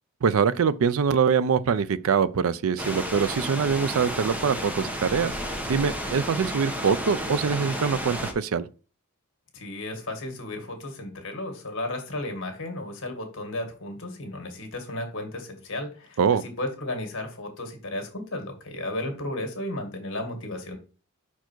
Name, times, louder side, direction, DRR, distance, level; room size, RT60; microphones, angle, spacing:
voice 1, 0.2-5.4 5.7-8.7 16.2-16.4, right 6 dB, 70° right, 0.4 m, -24 dB
sound 1, 2.8-8.3, equal, 5° right, 0.8 m, -32 dB
voice 2, 9.5-20.8, left 1 dB, 60° left, 1.9 m, -34 dB
5.6 x 4.5 x 4.5 m
head